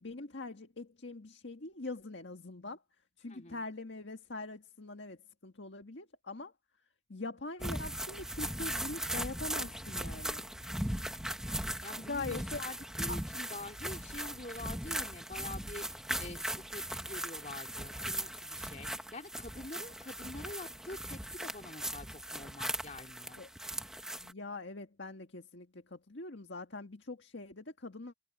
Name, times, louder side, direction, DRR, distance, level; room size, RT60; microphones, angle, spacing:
voice 1, 0.0-2.8 3.2-6.5 7.1-10.4 12.0-12.6 13.1-13.2 23.4-23.5 24.2-28.1, left 2 dB, 75° left, 1.7 m, -43 dB
voice 2, 3.3-3.6 11.8-23.4, left 2 dB, 40° left, 3.0 m, -46 dB
sound 1, 7.6-24.3, right 1 dB, 5° right, 1.3 m, -39 dB
head